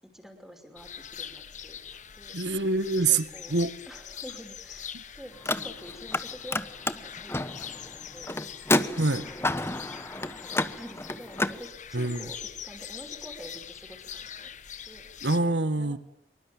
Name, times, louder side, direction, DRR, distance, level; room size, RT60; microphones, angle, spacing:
voice 1, 0.1-1.8 2.1-2.4 3.0-3.5 3.9-6.7 6.9-8.3 9.2-9.9 10.4-14.5 14.8-15.1 15.8-16.0, equal, ahead, 4 dB, 5.6 m, -47 dB
sound 1, 0.8-15.4, left 8 dB, 45° left, 1.4 m, -43 dB
voice 2, 2.3-3.2 3.5-3.7 9.0-9.2 11.9-12.2 15.2-16.0, right 3 dB, 85° right, 13 dB, 1.6 m, -25 dB
Car, 5.3-6.2 6.5-11.6, left 2 dB, 15° left, 1.1 m, -30 dB
25.5 x 23.5 x 8.9 m, 0.71 s
head